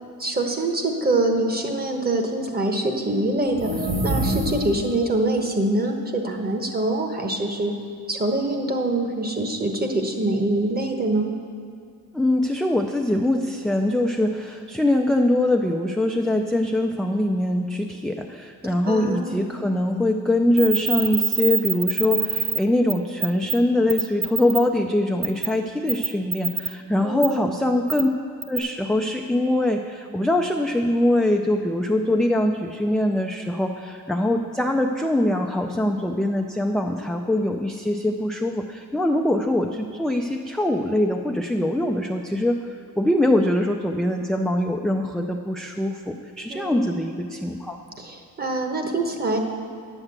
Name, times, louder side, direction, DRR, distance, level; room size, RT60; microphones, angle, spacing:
voice 1, 0.2-7.7 8.1-11.3 18.8-19.4 27.0-27.5 46.5-47.0 48.0-49.4, right 2 dB, 25° right, 3 dB, 1.1 m, -24 dB
sound 1, 3.5-5.0, right 1 dB, 40° right, 1.7 m, -26 dB
voice 2, 12.1-28.1 28.5-42.6 43.0-47.8, left 1 dB, ahead, 2 dB, 0.3 m, -23 dB
sound 2, 20.6-22.6 22.9-23.0 23.2-23.5 23.9-24.6 25.2-25.5 25.9-26.7 27.2-27.3 27.9-28.0 28.4-28.6, right 6 dB, 65° right, 1.1 m, -24 dB
9.7 x 7.4 x 7.9 m, 2.2 s
cardioid pair, 135°, 38 cm